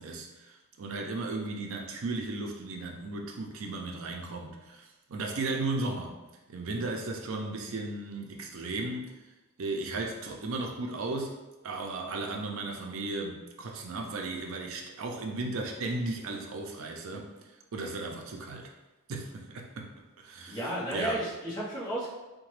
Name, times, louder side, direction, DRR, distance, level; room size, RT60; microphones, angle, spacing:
voice 1, 0.0-6.2 6.5-9.1 9.6-11.3 11.6-17.3 17.7-18.7 19.1-19.9 20.2-20.6 20.9-21.2, right 2 dB, 70° right, 2 dB, 0.5 m, -35 dB
voice 2, 20.5-22.1, right 1 dB, 20° left, -7 dB, 0.8 m, -33 dB
2.9 x 2.1 x 3.1 m, 1.1 s
head